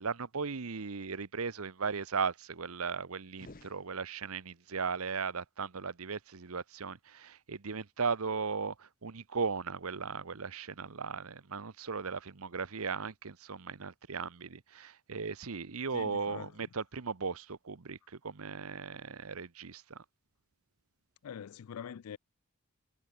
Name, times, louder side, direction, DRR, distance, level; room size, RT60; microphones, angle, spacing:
voice 1, 0.0-20.0, right 5 dB, 80° right, 1.0 m, -37 dB
sound 1, 3.3-4.6, left 2 dB, 40° left, 1.0 m, -55 dB
voice 2, 15.9-16.7 21.2-22.2, left 8 dB, 90° left, 0.4 m, -44 dB
head